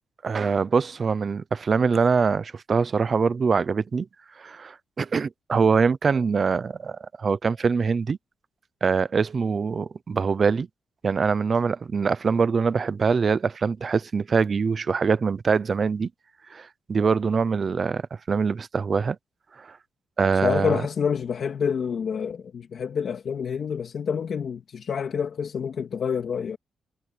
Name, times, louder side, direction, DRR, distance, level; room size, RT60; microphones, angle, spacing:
voice 1, 0.2-4.1 4.4-8.2 8.8-10.7 11.0-16.1 16.5-18.0 18.3-19.2 19.6-19.7 20.2-20.8, right 5 dB, 30° right, 0.6 m, -23 dB
voice 2, 20.4-26.6, left 7 dB, 45° left, 2.4 m, -27 dB
wide cardioid pair, 175°, 0 cm